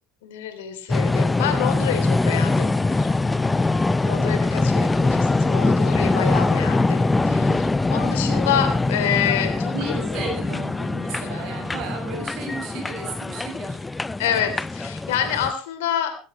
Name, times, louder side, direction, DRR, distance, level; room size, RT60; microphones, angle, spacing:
voice 1, 0.2-2.8 4.0-7.5 7.9-9.9 11.1-11.4 14.2-16.2, left 9 dB, 70° left, 8 dB, 3.3 m, -27 dB
sound 1, 0.9-15.5, left 3 dB, 15° left, 0.7 m, -22 dB
sound 2, 1.6-10.1, left 11 dB, 50° left, 1.7 m, -42 dB
voice 2, 7.3-7.8 9.7-14.0, right 4 dB, 60° right, 3 dB, 7.3 m, -34 dB
19.5 x 15.5 x 3.2 m, 0.35 s
figure-of-eight pair, 65°, 0 cm